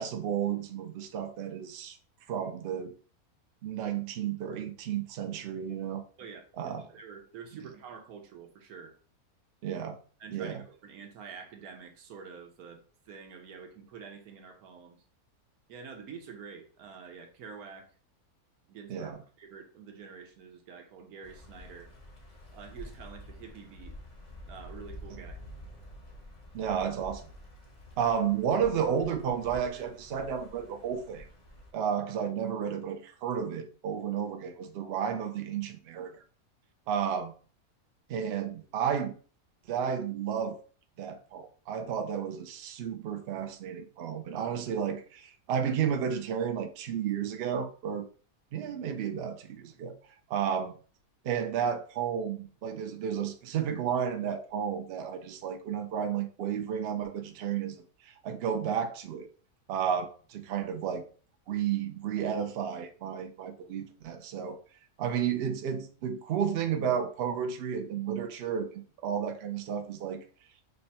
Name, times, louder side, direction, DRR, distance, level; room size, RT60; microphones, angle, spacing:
voice 1, 0.0-2.0 2.3-2.9 3.6-6.0 6.6-6.9 9.6-10.0 10.3-10.6 18.9-19.2 26.5-27.3 28.0-31.3 31.7-36.1 36.9-37.3 38.1-39.1 39.7-40.6 41.0-48.1 48.5-50.0 50.3-50.8 51.2-59.3 59.7-61.0 61.5-64.6 65.0-70.2, right 8 dB, 65° right, 0.6 m, -32 dB
voice 2, 6.2-9.0 10.2-15.0 15.7-17.9 18.7-21.9 22.5-23.9 24.5-25.4, right 6 dB, 80° right, 1.2 m, -47 dB
sound 1, 21.2-31.7, left 1 dB, 40° left, 0.7 m, -48 dB
3.3 x 2.2 x 4.0 m
omnidirectional pair, 1.6 m